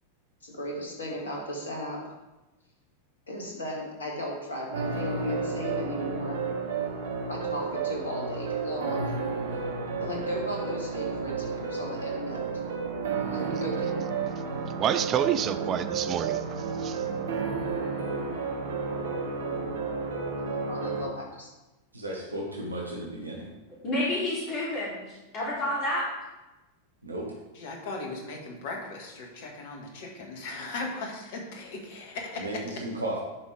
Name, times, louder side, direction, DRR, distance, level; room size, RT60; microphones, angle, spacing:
voice 1, 0.4-2.1 3.3-6.4 7.3-9.1 10.0-12.5 13.2-14.1 20.4-21.5, left 1 dB, 70° left, 2.1 m, -36 dB
sound 1, 4.7-21.1, right 5 dB, 60° right, 1.2 m, -31 dB
voice 2, 14.8-17.0, right 9 dB, 30° right, 0.5 m, -29 dB
voice 3, 21.9-23.5 27.0-27.2 32.4-32.5 32.8-33.2, right 1 dB, 80° right, 1.3 m, -34 dB
voice 4, 23.8-26.1, left 1 dB, 35° left, 2.9 m, -29 dB
voice 5, 27.5-32.8, left 3 dB, 50° left, 1.7 m, -38 dB
10.5 x 5.4 x 3.4 m
figure-of-eight pair, 90°, 0 cm